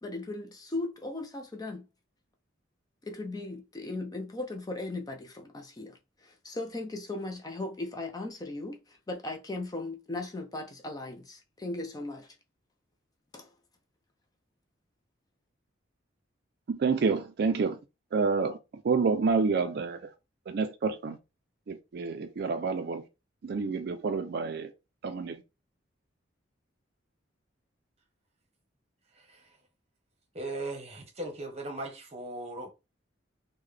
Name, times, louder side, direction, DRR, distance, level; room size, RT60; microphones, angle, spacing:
voice 1, 0.0-1.8 3.0-12.4 13.3-13.5, left 2 dB, 20° left, 0.4 m, -37 dB
voice 2, 16.7-17.8 18.1-18.6 18.8-20.1 20.5-21.2 21.7-23.0 23.4-24.7 25.0-25.4, right 4 dB, 55° right, 0.4 m, -28 dB
voice 3, 29.1-29.6 30.3-32.7, right 2 dB, 35° right, 0.9 m, -38 dB
3.7 x 2.2 x 3.2 m
head